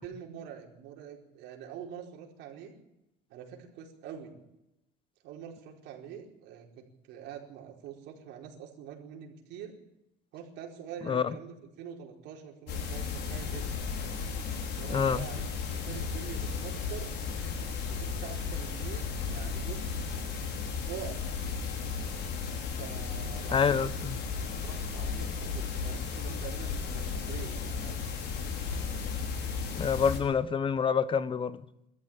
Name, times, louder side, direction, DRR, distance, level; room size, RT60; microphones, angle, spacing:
voice 1, 0.0-2.7 3.3-4.4 5.2-9.7 10.3-13.8 14.8-15.4 15.7-17.1 17.9-20.1 20.8-21.2 22.8-23.9 24.5-28.0, right 8 dB, 85° right, 1 dB, 4.7 m, -45 dB
sound 1, 12.7-30.2, left 5 dB, 70° left, 5.4 m, -34 dB
voice 2, 14.9-15.2 23.5-24.2 29.7-31.6, left 6 dB, 30° left, 15 dB, 1.1 m, -27 dB
23.0 x 13.5 x 8.9 m, 0.88 s
cardioid pair, 135°, 18 cm